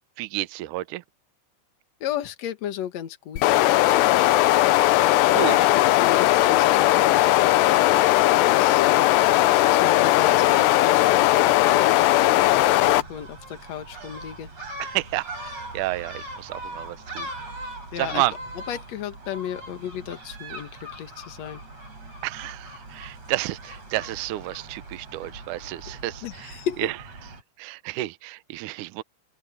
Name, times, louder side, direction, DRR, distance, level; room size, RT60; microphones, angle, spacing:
voice 1, 0.2-1.0 5.3-5.8 14.8-17.3 18.0-18.3 22.2-26.9 27.6-29.0, right 17 dB, 85° right, 1.8 m, -30 dB
voice 2, 2.0-3.6 5.7-7.5 8.5-9.1 9.5-12.0 12.6-14.5 17.9-18.2 18.7-21.6 26.2-26.9, left 10 dB, 55° left, 2.1 m, -34 dB
sound 1, 3.4-13.0, left 16 dB, 90° left, 3.0 m, -18 dB
Gull seagull, 12.4-27.4, right 1 dB, 40° right, 7.8 m, -40 dB
open air
omnidirectional pair, 4.8 m